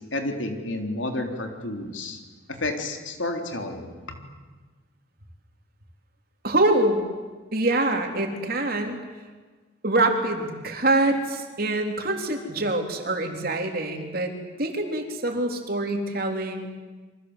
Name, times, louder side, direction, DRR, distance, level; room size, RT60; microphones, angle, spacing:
voice 1, 0.1-2.2 2.5-3.9, left 2 dB, 70° left, 4 dB, 3.8 m, -30 dB
voice 2, 6.4-7.0 7.5-9.0 9.8-14.3 14.6-16.7, right 2 dB, 45° right, 3 dB, 3.6 m, -25 dB
29.0 x 24.5 x 8.2 m, 1.3 s
head